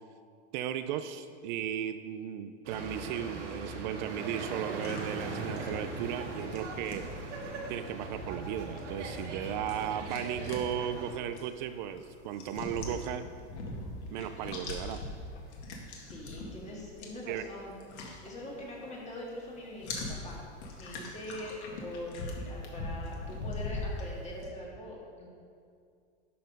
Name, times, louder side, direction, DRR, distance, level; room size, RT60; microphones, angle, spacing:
voice 1, 0.5-7.1 7.7-13.2 14.1-15.0 17.3-17.4, right 10 dB, 45° right, 11 dB, 0.4 m, -36 dB
sound 1, 2.6-11.1, right 3 dB, 85° right, 1.7 m, -39 dB
sound 2, 4.8-19.0 19.3-24.5, left 2 dB, 70° left, 2.0 m, -42 dB
voice 2, 15.9-20.4 20.8-25.3, left 1 dB, 20° left, -3 dB, 1.8 m, -43 dB
12.0 x 4.3 x 5.3 m, 2.3 s
supercardioid pair, 135°, 35 cm